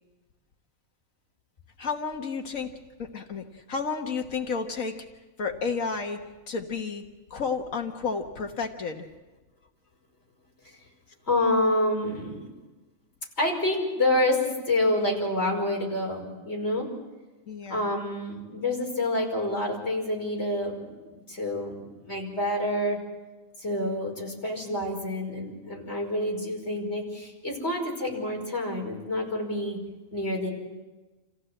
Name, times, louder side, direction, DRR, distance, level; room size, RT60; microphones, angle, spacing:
voice 1, 1.8-2.7 3.0-5.1 5.4-7.0 7.3-9.1 17.5-17.9, left 5 dB, 75° left, 4 dB, 1.8 m, -31 dB
voice 2, 11.3-12.5 13.4-16.9 17.7-23.0 23.6-29.8 30.1-30.5, left 1 dB, 50° left, -1 dB, 5.7 m, -28 dB
28.0 x 16.0 x 7.9 m, 1.2 s
omnidirectional pair, 1.4 m